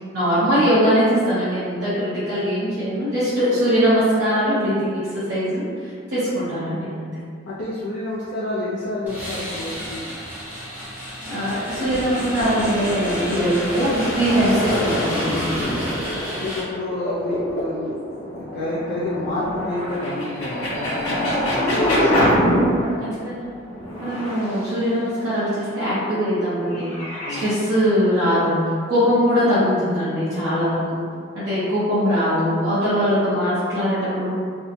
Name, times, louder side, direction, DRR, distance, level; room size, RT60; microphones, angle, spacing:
voice 1, 0.1-5.7 6.1-7.1 11.2-15.8 21.7-21.9 22.4-22.9 23.2-23.6 24.0-26.9 27.3-28.6 28.9-31.0 31.3-34.3, equal, 55° right, -13 dB, 0.7 m, -21 dB
voice 2, 7.5-10.0 16.4-18.0 18.3-22.3 27.3-27.5, left 2 dB, 55° left, -8 dB, 0.3 m, -29 dB
sound 1, 9.1-16.6, equal, 10° right, 0.5 m, -32 dB
sound 2, 11.7-23.2 23.6-25.3 26.3-27.4, equal, 70° left, 0.9 m, -25 dB
2.6 x 2.1 x 2.6 m, 2.1 s
head